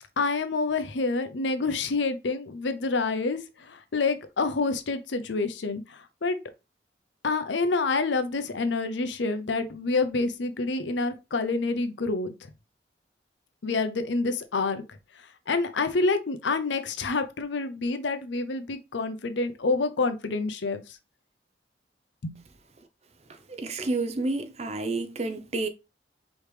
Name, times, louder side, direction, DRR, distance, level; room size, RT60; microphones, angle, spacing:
voice 1, 0.2-6.4 7.2-12.5 13.6-21.0 22.2-22.4, left 3 dB, 85° left, 0.7 m, -28 dB
voice 2, 23.3-25.7, right 2 dB, 35° right, 0.5 m, -30 dB
4.8 x 3.1 x 3.3 m
head